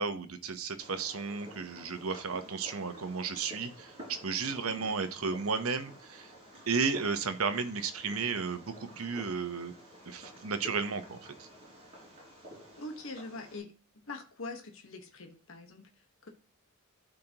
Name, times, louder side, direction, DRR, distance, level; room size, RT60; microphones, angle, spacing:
voice 1, 0.0-6.3 6.7-9.7 10.0-11.5, right 5 dB, 85° right, 10 dB, 1.0 m, -33 dB
Fireworks, 0.8-13.6, equal, 30° right, 4.9 m, -51 dB
voice 2, 12.8-16.3, left 2 dB, 65° left, 4 dB, 1.3 m, -44 dB
12.5 x 5.1 x 3.0 m, 0.38 s
head